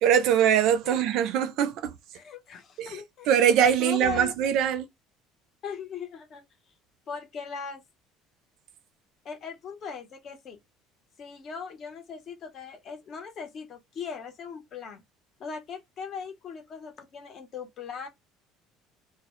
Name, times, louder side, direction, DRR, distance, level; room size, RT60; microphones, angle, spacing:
voice 1, 0.0-1.9 2.8-3.0 3.3-4.9, right 9 dB, 60° right, 0.4 m, -22 dB
voice 2, 2.1-3.3 3.8-4.3 5.6-6.4 7.1-7.8 9.2-10.6 11.2-15.0 15.4-18.1, left 6 dB, 40° left, 0.7 m, -39 dB
2.1 x 2.0 x 2.9 m
cardioid pair, 150°, 0 cm